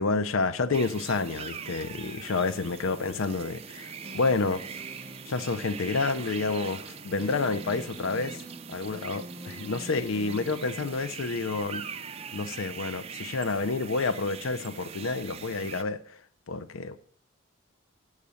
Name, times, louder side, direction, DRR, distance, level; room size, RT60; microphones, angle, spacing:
voice 1, 0.0-4.6 5.3-8.4 8.7-11.8 12.3-16.0 16.5-17.0, left 3 dB, 75° left, 0.5 m, -29 dB
sound 1, 0.7-15.8, right 6 dB, 30° right, 0.4 m, -42 dB
sound 2, 4.0-11.5, right 1 dB, 5° left, 0.7 m, -46 dB
8.5 x 6.5 x 6.9 m
head